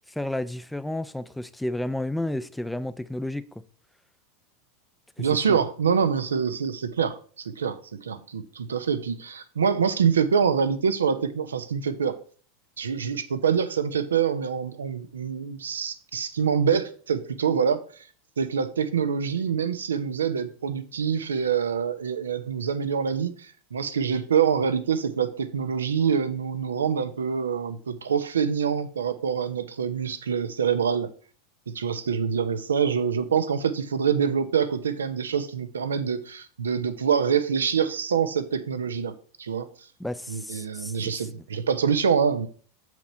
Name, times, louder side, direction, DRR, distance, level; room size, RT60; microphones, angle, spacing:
voice 1, 0.1-3.4 5.2-5.6 40.0-40.9, left 1 dB, 5° left, 0.6 m, -31 dB
voice 2, 5.2-12.1 12.8-17.8 18.4-31.1 31.7-39.7 40.3-42.5, right 7 dB, 85° right, 0.8 m, -25 dB
7.3 x 6.1 x 4.3 m
hypercardioid pair, 95°, 0 cm